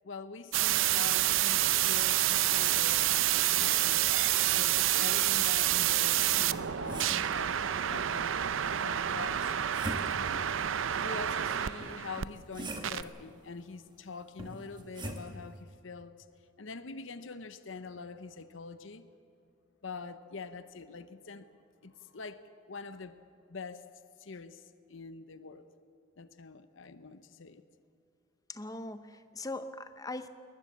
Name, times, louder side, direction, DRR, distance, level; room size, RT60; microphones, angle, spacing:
voice 1, 0.0-4.1 4.5-8.5 8.7-9.5 11.0-16.3 16.6-19.1 19.8-21.5 21.8-23.2 23.5-23.8 24.2-25.7 26.2-27.6, left 4 dB, 75° left, 12 dB, 0.8 m, -45 dB
sound 1, 0.5-12.3 12.8-13.0, right 12 dB, 80° right, 0.5 m, -28 dB
sound 2, 6.4-7.4 9.1-10.4 11.8-13.1 14.4-15.3, right 1 dB, 20° right, 1.6 m, -42 dB
voice 2, 28.5-30.3, left 2 dB, 20° left, 10 dB, 0.8 m, -40 dB
21.0 x 19.5 x 7.4 m, 2.4 s
head